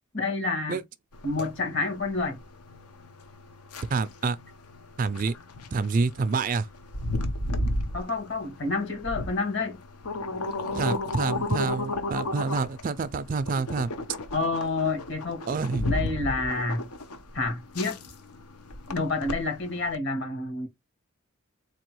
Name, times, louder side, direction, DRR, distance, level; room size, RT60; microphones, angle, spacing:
voice 1, 0.1-0.8 1.2-2.4 7.9-9.8 14.3-15.4 15.9-16.8 17.3-18.0 18.9-20.7, left 3 dB, 55° left, 1.4 m, -28 dB
sound 1, 1.1-20.0, left 2 dB, 90° left, 0.9 m, -33 dB
voice 2, 3.9-4.4 5.0-5.3 5.7-6.7 10.7-13.9 15.5-15.8, right 4 dB, 35° right, 0.3 m, -27 dB
4.0 x 2.9 x 3.0 m
head